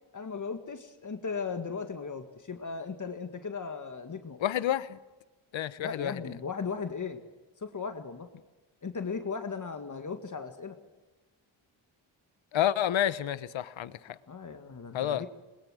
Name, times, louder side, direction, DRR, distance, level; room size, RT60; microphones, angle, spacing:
voice 1, 0.1-4.4 5.8-7.2 7.6-8.3 8.8-10.8 14.3-15.3, left 5 dB, 40° left, 1.9 m, -37 dB
voice 2, 4.4-5.0 5.5-6.2 12.5-14.2 14.9-15.3, left 11 dB, 70° left, 1.1 m, -29 dB
21.5 x 21.5 x 6.3 m
cardioid pair, 80°, 48 cm